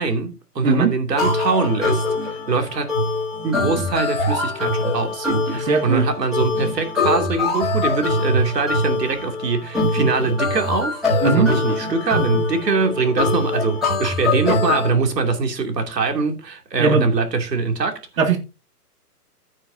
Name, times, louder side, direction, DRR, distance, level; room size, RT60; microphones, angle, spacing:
voice 1, 0.0-2.9 3.4-18.0, right 4 dB, 90° right, 2.8 m, -23 dB
voice 2, 0.6-0.9 5.5-6.1 11.2-11.5 16.8-17.1 18.2-18.4, right 4 dB, 55° right, 2.0 m, -18 dB
sound 1, 1.2-14.9, left 2 dB, ahead, 1.0 m, -23 dB
15.0 x 6.4 x 2.7 m
hypercardioid pair, 180°, 47 cm